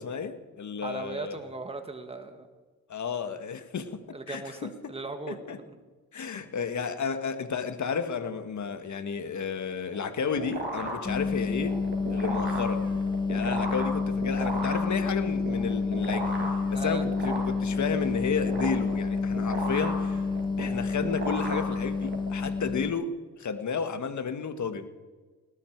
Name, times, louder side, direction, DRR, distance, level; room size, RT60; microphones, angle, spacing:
voice 1, 0.0-1.4 2.9-4.0 4.3-4.7 5.3-5.6 6.1-11.8 12.1-12.8 13.3-16.3 16.7-20.2 20.6-24.9, left 6 dB, 50° left, 9 dB, 1.7 m, -32 dB
voice 2, 0.8-2.5 4.1-5.4 5.7-5.8 16.7-17.1, right 3 dB, 15° right, 6 dB, 1.8 m, -38 dB
sound 1, 9.9-22.3, right 2 dB, 30° right, 5.9 m, -36 dB
sound 2, 11.0-22.9, left 4 dB, 15° left, 1.4 m, -29 dB
19.0 x 14.0 x 4.7 m, 1.3 s
supercardioid pair, 70°, 37 cm